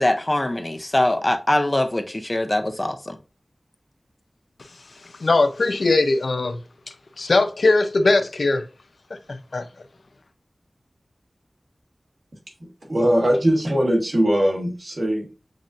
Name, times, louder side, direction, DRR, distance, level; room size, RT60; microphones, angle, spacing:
voice 1, 0.0-3.2, left 1 dB, 30° left, 7 dB, 0.5 m, -22 dB
voice 2, 5.2-6.6 7.2-8.7 9.3-9.7, left 3 dB, 85° left, 9 dB, 0.5 m, -20 dB
voice 3, 12.9-15.4, equal, 55° right, 0 dB, 1.4 m, -20 dB
7.2 x 2.5 x 2.5 m, 0.32 s
wide cardioid pair, 75°, 0 cm